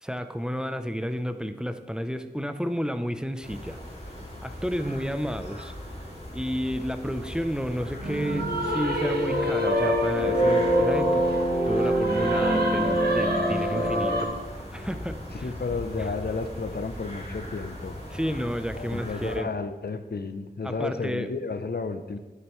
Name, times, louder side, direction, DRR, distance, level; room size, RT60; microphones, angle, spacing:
voice 1, 0.0-3.8 4.4-5.7 6.3-11.3 11.7-14.3 14.7-15.5 16.0-16.1 18.1-19.5 20.6-21.3, equal, 5° right, 9 dB, 0.5 m, -31 dB
sound 1, 3.4-19.4, equal, 35° left, 3.1 m, -39 dB
sound 2, 8.0-14.2, equal, 60° right, 1.3 m, -24 dB
voice 2, 15.3-17.9 18.8-22.2, left 4 dB, 60° left, 9 dB, 0.6 m, -32 dB
9.7 x 8.5 x 3.1 m, 1.2 s
wide cardioid pair, 55°, 18 cm